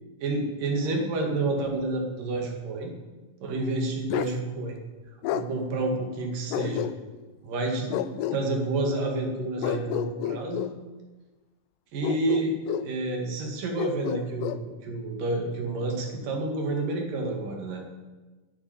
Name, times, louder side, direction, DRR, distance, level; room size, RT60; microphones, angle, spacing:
voice 1, 0.2-2.9 3.4-4.8 5.3-6.9 7.4-10.7 11.9-12.6 12.8-17.8, right 2 dB, 75° right, 1 dB, 3.7 m, -29 dB
Bark, 4.1-4.4 5.2-5.5 6.5-7.2 7.9-8.4 9.6-10.8 12.0-12.9 13.8-14.6, left 12 dB, 90° left, 2.3 m, -30 dB
10.0 x 9.5 x 8.6 m, 1.2 s
omnidirectional pair, 3.9 m